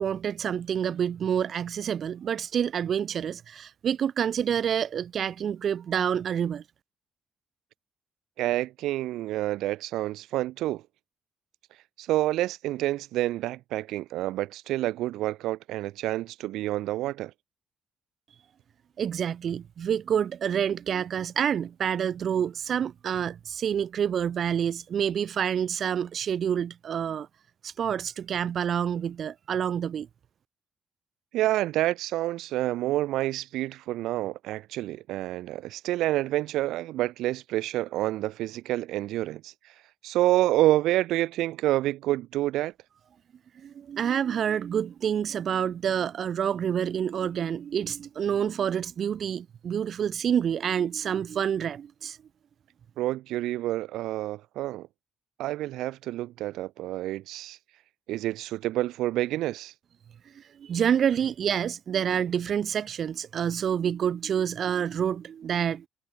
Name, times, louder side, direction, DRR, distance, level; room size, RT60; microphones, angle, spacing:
voice 1, 0.0-6.6 19.0-27.3 27.6-30.1 43.6-52.2 60.3-65.8, right 8 dB, 55° right, 4.8 m, -28 dB
voice 2, 8.4-10.8 12.0-17.3 31.3-39.5 40.0-42.7 53.0-54.9 55.4-57.6 58.1-59.7, right 15 dB, 85° right, 6.6 m, -28 dB
cardioid pair, 80°, 0 cm